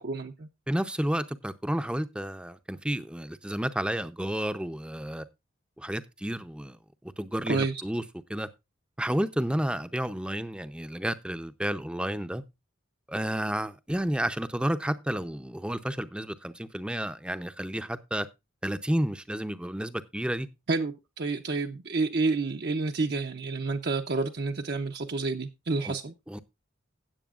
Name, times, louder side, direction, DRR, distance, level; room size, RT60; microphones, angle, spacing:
voice 1, 0.0-0.5 7.5-7.8 20.7-26.1, right 3 dB, 50° right, 0.6 m, -29 dB
voice 2, 0.7-5.2 5.8-6.8 7.0-8.0 8.3-8.5 9.0-12.4 13.1-18.3 18.6-20.5 25.8-26.0 26.3-26.4, right 1 dB, 5° right, 0.5 m, -31 dB
16.5 x 8.0 x 2.4 m
head